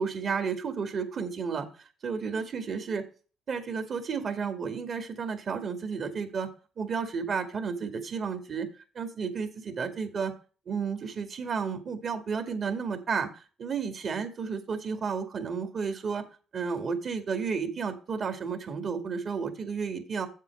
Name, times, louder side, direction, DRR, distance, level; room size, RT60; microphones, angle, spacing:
voice 1, 0.0-1.7 2.0-3.0 3.5-6.5 6.8-8.7 9.0-10.3 10.7-13.3 13.6-16.2 16.5-20.3, right 5 dB, 55° right, 8 dB, 2.1 m, -32 dB
8.3 x 7.5 x 4.6 m, 0.36 s
supercardioid pair, 60°, 0 cm